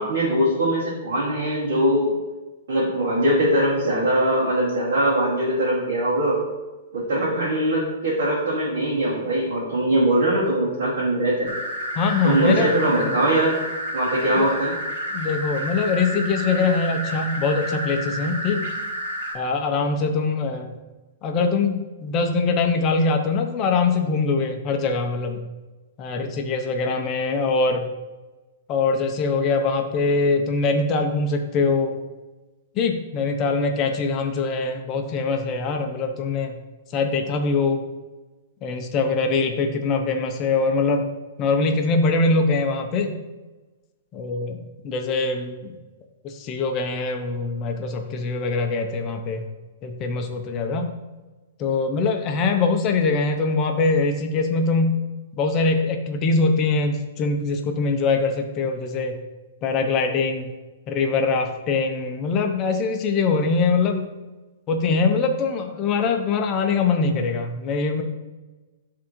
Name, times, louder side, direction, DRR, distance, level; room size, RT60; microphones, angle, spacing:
voice 1, 0.0-2.1 2.7-6.4 6.9-11.5 12.2-13.6 13.9-14.8, right 1 dB, 60° right, -9 dB, 2.3 m, -21 dB
sound 1, 11.5-19.3, equal, 85° right, 1.9 m, -30 dB
voice 2, 12.0-13.2 14.4-14.5 15.1-18.7 19.3-20.7 21.2-25.4 26.0-27.9 28.7-32.0 32.8-36.6 36.9-37.8 38.6-41.1 41.4-43.2 44.1-45.8 46.2-49.5 49.8-50.9 51.6-55.0 55.4-59.2 59.6-60.5 60.9-64.1 64.7-68.0, left 4 dB, 20° left, 5 dB, 0.6 m, -23 dB
10.5 x 3.6 x 3.0 m, 1.2 s
hypercardioid pair, 170°, 0 cm